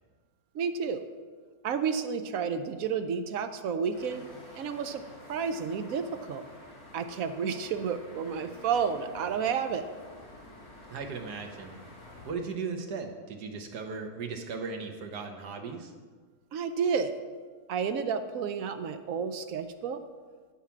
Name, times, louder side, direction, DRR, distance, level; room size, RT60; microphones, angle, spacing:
voice 1, 0.5-1.0 1.6-4.2 4.5-5.0 5.3-6.4 6.9-9.9 16.5-17.1 17.7-20.0, right 6 dB, 70° right, 9 dB, 0.9 m, -31 dB
sound 1, 3.9-12.3, left 1 dB, 20° left, 1.8 m, -49 dB
voice 2, 10.9-11.8 12.2-15.9, right 4 dB, 90° right, 4 dB, 1.6 m, -37 dB
8.8 x 5.7 x 7.1 m, 1.5 s
omnidirectional pair, 1.7 m